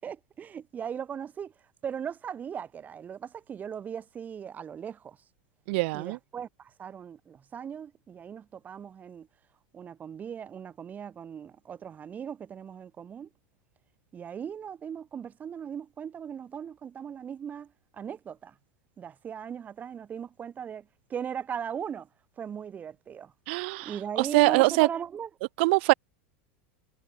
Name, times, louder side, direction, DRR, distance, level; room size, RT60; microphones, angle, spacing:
voice 1, 0.0-1.5 1.8-5.2 5.9-9.3 9.7-13.3 14.1-18.5 19.0-22.1 22.4-23.3 23.8-25.3, right 8 dB, 25° right, 5.9 m, -38 dB
voice 2, 5.7-6.2 23.5-24.9 25.6-25.9, right 26 dB, 60° right, 0.4 m, -23 dB
supercardioid pair, 135°, 7 cm